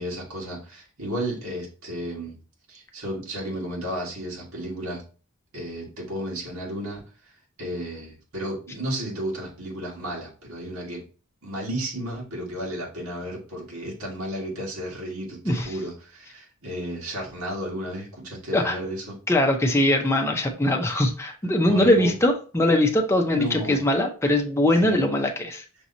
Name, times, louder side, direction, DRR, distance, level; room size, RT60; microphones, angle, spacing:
voice 1, 0.0-2.4 2.7-5.0 5.5-7.3 7.6-11.0 11.4-19.2 21.7-22.1 23.3-23.8 24.8-25.0, right 1 dB, 80° right, -4 dB, 1.8 m, -33 dB
voice 2, 15.4-15.8 18.5-18.8 19.3-25.6, left 1 dB, 10° left, 2 dB, 0.6 m, -21 dB
6.0 x 2.9 x 2.7 m, 0.37 s
head